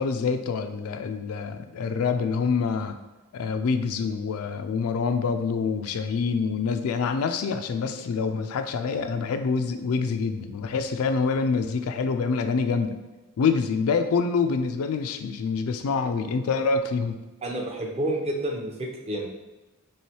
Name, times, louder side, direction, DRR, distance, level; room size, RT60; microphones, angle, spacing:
voice 1, 0.0-3.0 3.3-13.0 13.4-17.2, left 5 dB, 70° left, 7 dB, 0.3 m, -26 dB
voice 2, 17.4-19.3, right 1 dB, 30° right, 1 dB, 0.6 m, -29 dB
3.2 x 3.0 x 4.3 m, 1.1 s
head